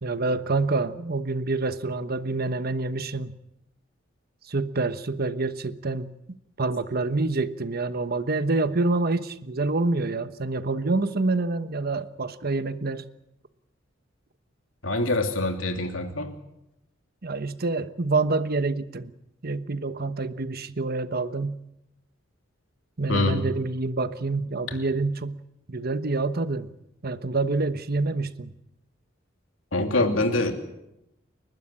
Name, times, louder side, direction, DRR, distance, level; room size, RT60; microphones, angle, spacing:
voice 1, 0.0-3.4 4.5-6.1 6.6-13.0 17.2-19.1 19.4-21.6 23.0-25.4 25.7-26.7 27.0-28.5, right 3 dB, 50° right, 12 dB, 1.1 m, -27 dB
voice 2, 14.8-16.4 23.1-23.4 29.7-30.5, left 2 dB, 90° left, 5 dB, 3.0 m, -24 dB
29.5 x 12.0 x 9.9 m, 0.88 s
head